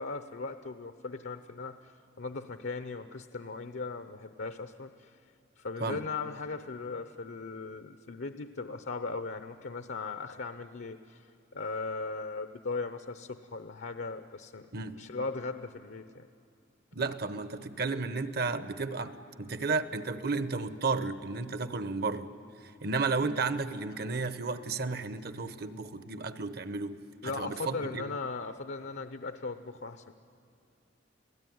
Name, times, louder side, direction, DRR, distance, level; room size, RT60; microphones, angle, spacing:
voice 1, 0.0-1.9 2.2-5.1 5.6-11.2 11.5-14.7 14.9-16.3 27.2-30.1, left 3 dB, 70° left, 9 dB, 0.8 m, -38 dB
voice 2, 14.7-15.0 16.9-22.3 22.6-28.2, right 4 dB, 55° right, 11 dB, 1.0 m, -33 dB
30.0 x 17.5 x 9.4 m, 2.6 s
head